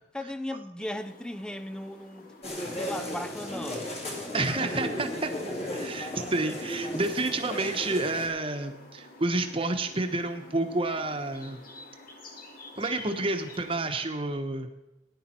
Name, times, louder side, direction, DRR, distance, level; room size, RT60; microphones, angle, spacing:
voice 1, 0.1-3.9, left 1 dB, 5° left, 0.5 m, -37 dB
sound 1, 0.8-14.1, left 2 dB, 50° left, 1.9 m, -50 dB
sound 2, 2.4-8.3, left 1 dB, 35° left, 2.5 m, -35 dB
voice 2, 4.3-5.3 5.7-11.6 12.8-14.7, right 2 dB, 30° right, 1.1 m, -29 dB
18.0 x 10.0 x 4.4 m
head